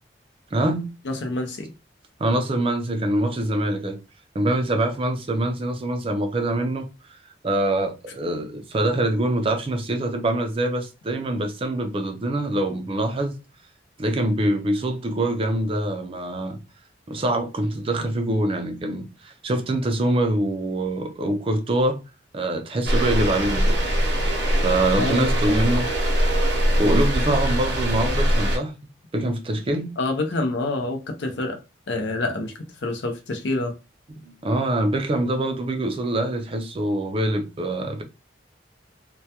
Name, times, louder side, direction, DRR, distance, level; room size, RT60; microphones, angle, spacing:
voice 1, 0.5-0.9 2.2-4.0 4.3-6.9 7.4-13.4 14.0-16.6 17.1-22.0 22.3-23.8 24.6-25.9 26.4-28.7 29.1-29.9 34.2-38.0, right 1 dB, 30° right, 0.4 m, -24 dB
voice 2, 1.0-1.7 25.0-25.6 30.0-31.6 31.9-32.5 32.8-33.7, left 2 dB, 70° left, 0.5 m, -27 dB
sound 1, 22.9-28.6, equal, 65° right, 0.6 m, -22 dB
2.2 x 2.1 x 2.7 m
head